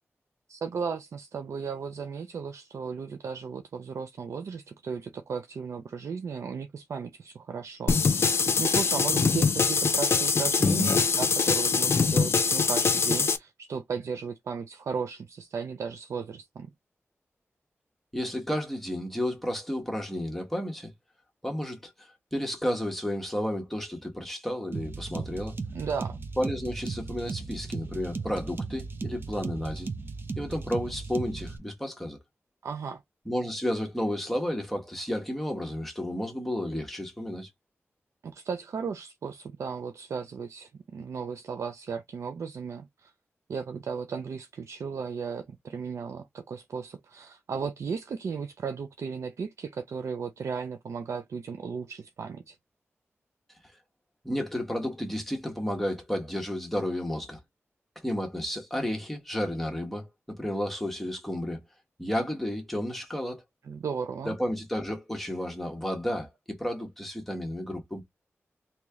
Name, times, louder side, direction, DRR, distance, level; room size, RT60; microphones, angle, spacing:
voice 1, 0.5-16.7 25.7-26.2 32.6-33.0 38.2-43.1 43.5-52.6 63.7-64.4, right 6 dB, 85° right, 0.4 m, -35 dB
sound 1, 7.9-13.4, left 5 dB, 60° left, 0.5 m, -23 dB
voice 2, 18.1-20.9 21.4-25.6 26.4-29.9 30.4-32.2 33.2-37.5 54.2-57.4 58.0-61.6 62.0-63.4 64.2-68.0, equal, 5° left, 1.2 m, -32 dB
sound 2, 24.7-31.6, right 4 dB, 50° right, 0.6 m, -36 dB
3.1 x 2.8 x 3.5 m
wide cardioid pair, 120°, 5 cm